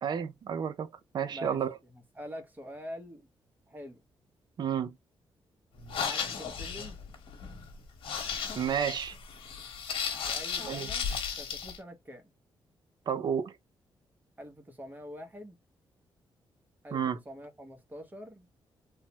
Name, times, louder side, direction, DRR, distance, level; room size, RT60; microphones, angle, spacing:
voice 1, 0.0-1.7 4.6-4.9 8.5-9.2 10.6-10.9 13.1-13.6 16.9-17.2, right 8 dB, 55° right, 0.4 m, -31 dB
voice 2, 1.3-1.6 1.9-3.3 3.7-4.1 5.9-7.0 10.3-12.3 14.4-15.6 16.8-18.5, equal, 20° right, 0.8 m, -45 dB
sound 1, 5.8-11.8, left 6 dB, 85° left, 0.9 m, -35 dB
3.2 x 2.0 x 2.7 m
cardioid pair, 120°, 9 cm